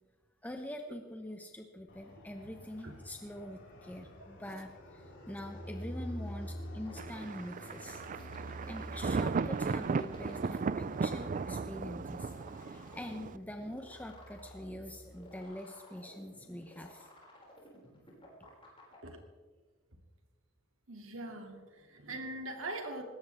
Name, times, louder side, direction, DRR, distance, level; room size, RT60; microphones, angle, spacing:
voice 1, 0.4-8.3 8.7-12.3 12.6-17.1, left 1 dB, 10° left, 4 dB, 0.9 m, -44 dB
Fixed-wing aircraft airplane, 1.9-15.4, equal, 60° left, 4.9 m, -48 dB
sound 1, 6.8-19.0, left 1 dB, 25° left, 5.8 m, -55 dB
Thunder, 7.0-13.4, right 4 dB, 40° right, 0.4 m, -36 dB
voice 2, 20.9-23.0, right 2 dB, 70° right, 3 dB, 2.6 m, -42 dB
20.5 x 17.5 x 3.5 m, 1.3 s
head